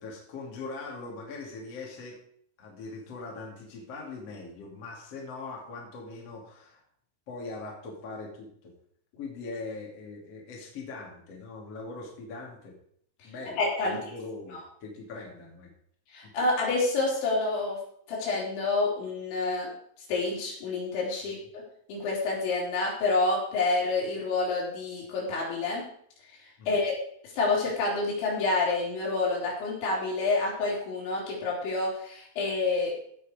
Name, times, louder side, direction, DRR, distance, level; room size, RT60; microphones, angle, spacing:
voice 1, 0.0-2.2 2.6-6.8 7.3-8.7 9.2-12.7 13.2-15.7 21.2-21.4 26.6-26.8, left 3 dB, 40° left, -1 dB, 2.8 m, -41 dB
voice 2, 13.6-14.0 14.5-14.6 16.1-17.8 18.1-19.7 20.1-21.6 21.9-25.8 26.7-27.0 27.3-32.9, left 3 dB, 65° left, -4 dB, 6.1 m, -28 dB
16.0 x 6.7 x 5.1 m, 0.65 s
omnidirectional pair, 5.8 m